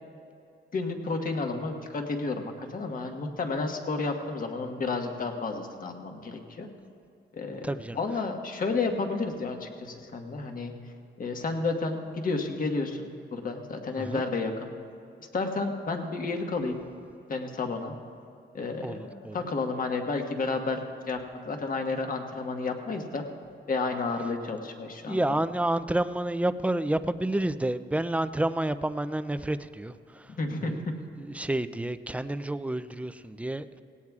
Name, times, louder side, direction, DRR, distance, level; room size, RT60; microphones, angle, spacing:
voice 1, 0.7-6.7 7.3-7.7 7.9-10.7 11.2-14.7 15.3-16.8 17.3-17.9 18.5-21.2 21.5-23.3 23.7-25.4 30.4-30.9, left 3 dB, 45° left, 3 dB, 1.3 m, -31 dB
voice 2, 7.6-8.0 14.0-14.2 18.8-19.4 25.1-30.3 30.6-30.9 31.2-33.8, right 1 dB, 5° right, 12 dB, 0.4 m, -29 dB
19.0 x 17.0 x 2.4 m, 2.6 s
cardioid pair, 120°, 19 cm